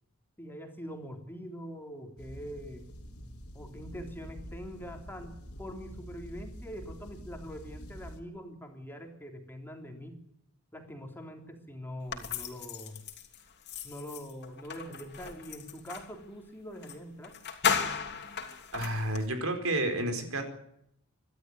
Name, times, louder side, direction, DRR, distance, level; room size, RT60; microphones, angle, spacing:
voice 1, 0.4-2.8 3.5-10.2 10.7-13.0 13.8-17.3, equal, 10° left, 3 dB, 3.4 m, -43 dB
sound 1, 2.2-8.2, equal, 80° left, 3.5 m, -46 dB
sound 2, 12.1-16.1 16.8-17.0 17.2-19.3, left 7 dB, 55° left, 3.1 m, -35 dB
voice 2, 18.7-20.4, right 1 dB, 70° right, 7 dB, 4.7 m, -30 dB
25.5 x 12.5 x 9.8 m, 0.74 s
head